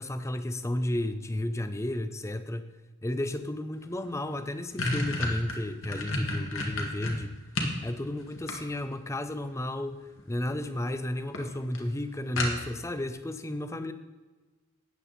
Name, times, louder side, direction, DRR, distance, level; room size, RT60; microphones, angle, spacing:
voice 1, 0.0-2.8 3.0-7.4 7.8-10.0 10.3-13.9, left 1 dB, 15° left, 10 dB, 0.6 m, -33 dB
sound 1, 3.9-4.0 4.3-7.8 8.2-9.1 10.2-10.6 10.9-11.0 11.3-11.4 11.7-11.8 12.4-12.9, left 2 dB, 60° left, 1.9 m, -31 dB
13.0 x 9.2 x 4.2 m, 1.3 s
head